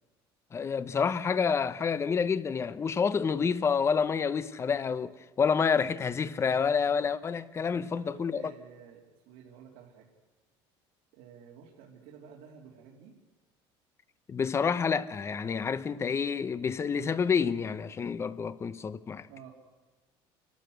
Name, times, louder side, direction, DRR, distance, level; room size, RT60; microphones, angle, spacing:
voice 1, 0.5-8.4 14.3-19.3, left 6 dB, 25° left, 0.9 m, -28 dB
voice 2, 7.7-10.1 11.1-13.1 19.3-19.5, right 7 dB, 75° right, 3.1 m, -51 dB
28.5 x 12.5 x 7.9 m
cardioid pair, 135°, 11 cm